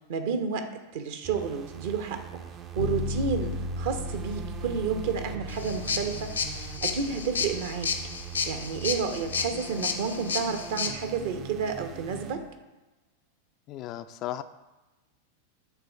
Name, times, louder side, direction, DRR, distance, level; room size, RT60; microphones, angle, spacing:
voice 1, 0.1-0.7 0.9-2.4 2.7-7.9 8.4-12.5, right 5 dB, 55° right, 7 dB, 0.9 m, -31 dB
sound 1, 1.2-12.4, right 8 dB, 30° right, 0.5 m, -43 dB
sound 2, 2.8-12.5, left 1 dB, 85° right, 0.9 m, -38 dB
sound 3, 5.5-10.9, left 5 dB, 75° left, 0.7 m, -32 dB
voice 2, 13.7-14.4, left 13 dB, 35° left, 11 dB, 0.3 m, -35 dB
8.2 x 3.7 x 6.0 m, 1.1 s
figure-of-eight pair, 90°, 0 cm